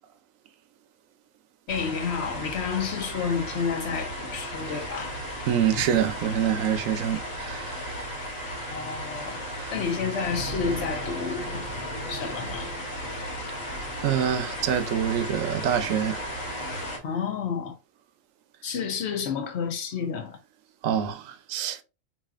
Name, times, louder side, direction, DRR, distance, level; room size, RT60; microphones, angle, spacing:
sound 1, 1.7-17.0, equal, 85° left, 1.6 m, -35 dB
voice 1, 1.7-5.2 5.7-5.8 8.6-9.4 9.7-11.6 12.1-12.7 17.0-17.7 18.6-20.4, left 6 dB, 60° left, 1.0 m, -30 dB
voice 2, 5.5-8.1 9.6-9.7 14.0-16.3 20.8-21.8, right 9 dB, 80° right, 1.0 m, -26 dB
4.9 x 2.8 x 2.4 m
omnidirectional pair, 1.4 m